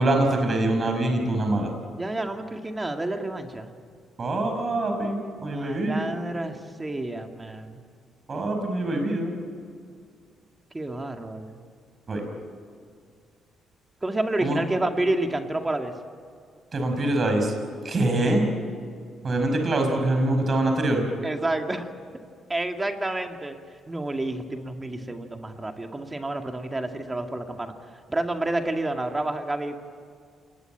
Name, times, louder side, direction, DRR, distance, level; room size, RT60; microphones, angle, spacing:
voice 1, 0.0-1.7 4.2-6.1 8.3-9.3 12.1-12.3 14.4-14.6 16.7-17.5 17.8-18.5 19.2-21.1, right 2 dB, 40° right, 4 dB, 5.4 m, -24 dB
voice 2, 2.0-3.7 5.4-7.8 10.7-11.6 14.0-15.9 21.2-21.9 22.5-23.6 23.9-27.7 28.1-29.7, right 2 dB, 20° right, 5 dB, 2.1 m, -29 dB
28.5 x 20.5 x 9.1 m, 2.2 s
cardioid pair, 90°, 0 cm